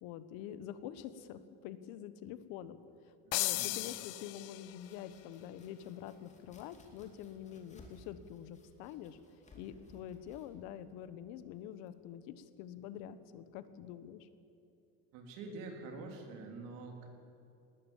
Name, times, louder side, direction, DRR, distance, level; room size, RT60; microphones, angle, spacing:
voice 1, 0.0-2.8 3.0-9.2 9.5-14.3, left 10 dB, 75° left, 13 dB, 1.3 m, -46 dB
voice 2, 3.2-3.8 15.1-17.1, right 3 dB, 60° right, 3 dB, 3.6 m, -46 dB
sound 1, 3.3-4.9, left 18 dB, 45° left, 0.5 m, -36 dB
Domestic sounds home sounds, 4.6-12.2, left 1 dB, 20° left, 2.7 m, -62 dB
19.5 x 19.5 x 7.3 m, 2.8 s
cardioid pair, 175°, 36 cm